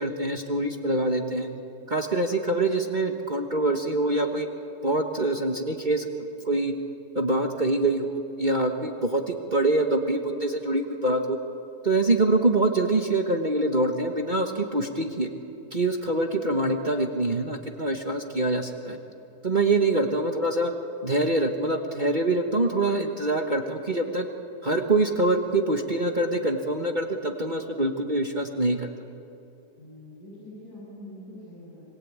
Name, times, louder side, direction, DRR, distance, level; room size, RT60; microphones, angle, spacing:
voice 1, 0.0-1.5 1.9-4.5 4.8-6.7 7.1-11.4 11.8-15.3 15.7-19.0 19.4-20.7 21.0-24.3 24.6-28.9, right 2 dB, 30° right, 4 dB, 1.4 m, -25 dB
voice 2, 16.1-16.5 29.8-31.8, left 1 dB, 70° left, -9 dB, 8.4 m, -44 dB
26.5 x 22.0 x 8.7 m, 2.8 s
omnidirectional pair, 1.8 m